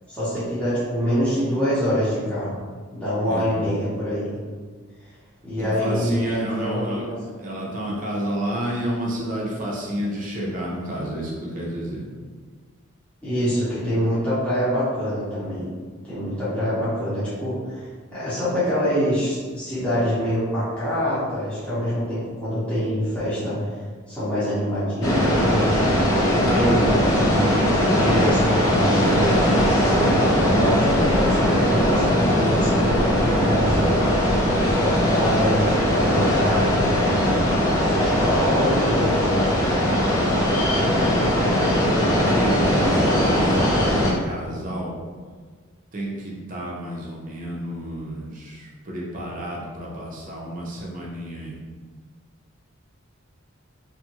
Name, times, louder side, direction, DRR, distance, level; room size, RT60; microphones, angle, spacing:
voice 1, 0.1-2.6 2.9-4.4 5.4-7.1 13.2-15.7 16.0-23.7 24.1-25.8 26.2-29.6 30.4-34.0 34.6-36.9 37.8-39.5, equal, 5° left, -13 dB, 0.9 m, -25 dB
voice 2, 3.3-3.7 5.6-7.1 7.4-12.1 34.4-35.0 40.1-40.5 42.2-44.9 45.9-51.6, equal, 40° right, -4 dB, 0.6 m, -31 dB
sound 1, 25.0-44.1, equal, 75° left, 0.8 m, -20 dB
2.6 x 2.5 x 2.9 m, 1.5 s
head